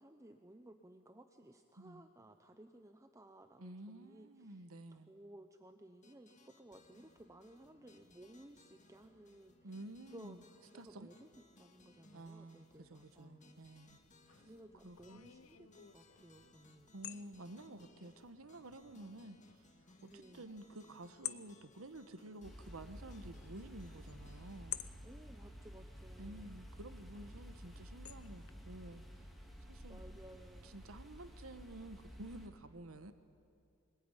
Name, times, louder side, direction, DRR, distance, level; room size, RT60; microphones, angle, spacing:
voice 1, 0.0-4.6 4.9-9.7 10.1-10.4 10.7-13.8 14.4-16.9 20.0-20.5 25.0-26.5 29.9-30.7, right 1 dB, 15° right, 6 dB, 0.8 m, -58 dB
voice 2, 3.6-5.1 9.6-10.4 10.7-11.1 12.1-14.0 14.8-15.2 16.9-19.7 20.0-24.8 26.2-29.3 29.6-30.0 30.6-33.1, right 1 dB, 80° right, 10 dB, 1.2 m, -51 dB
sound 1, 6.0-24.6, left 2 dB, 35° left, 1.8 m, -66 dB
sound 2, 13.9-28.5, left 14 dB, 90° left, 0.8 m, -53 dB
sound 3, 22.4-32.5, equal, ahead, 2.7 m, -52 dB
24.5 x 20.5 x 9.9 m, 2.4 s
head